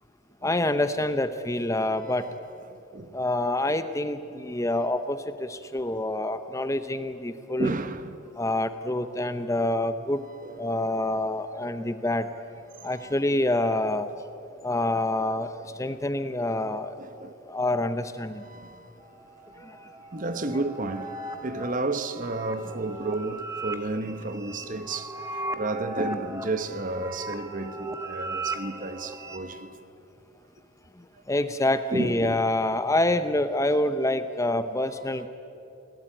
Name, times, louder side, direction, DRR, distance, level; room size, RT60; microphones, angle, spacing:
voice 1, 0.4-2.3 3.1-7.7 8.4-10.2 10.6-12.3 12.8-14.1 14.6-15.5 15.8-16.9 17.5-18.4 19.7-19.8 31.3-35.3, left 1 dB, 15° left, 0.7 m, -26 dB
voice 2, 7.6-8.2 10.4-10.6 11.8-11.9 12.8-13.1 17.0-17.4 18.4-18.9 20.1-29.8 31.9-32.4 34.7-34.8, right 2 dB, 40° right, 1.1 m, -32 dB
sound 1, 19.0-29.4, right 2 dB, 15° right, 1.4 m, -37 dB
28.5 x 18.5 x 9.0 m
head